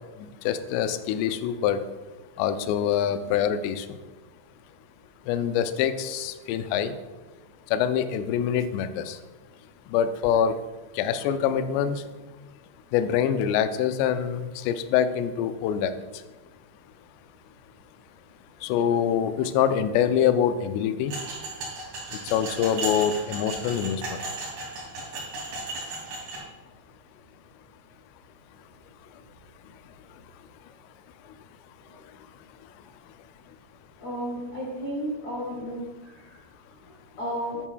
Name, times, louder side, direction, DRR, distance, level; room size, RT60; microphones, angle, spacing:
voice 1, 0.2-1.8 2.4-3.9 5.3-6.9 7.7-9.2 9.9-10.6 10.9-12.0 12.9-15.9 18.6-21.2 22.2-24.2, left 9 dB, 85° left, 10 dB, 2.5 m, -25 dB
sound 1, 21.1-26.4, right 2 dB, 50° right, 3.8 m, -35 dB
voice 2, 34.0-37.6, equal, 45° left, -5 dB, 2.0 m, -34 dB
11.0 x 9.0 x 2.3 m, 1.2 s
omnidirectional pair, 5.3 m